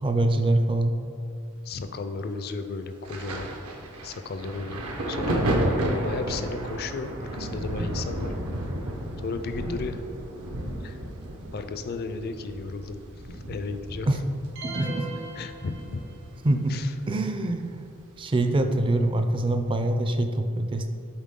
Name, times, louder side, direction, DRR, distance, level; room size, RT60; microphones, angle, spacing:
voice 1, 0.0-1.0 14.1-14.2 14.6-15.1 16.4-16.8 17.1-17.9 18.2-20.9, right 1 dB, 25° right, 7 dB, 0.4 m, -24 dB
voice 2, 1.6-3.5 4.0-5.4 6.0-8.3 9.2-10.0 10.8-11.0 11.5-13.0 13.3-14.1 15.4-16.0 16.7-16.9, left 3 dB, 45° left, 8 dB, 0.4 m, -34 dB
Thunder, 3.0-16.4 16.7-18.0 18.8-19.0, right 1 dB, 85° right, 0.9 m, -32 dB
sound 1, 14.6-16.4, right 3 dB, 60° right, 0.8 m, -38 dB
7.2 x 4.4 x 3.7 m, 2.4 s
head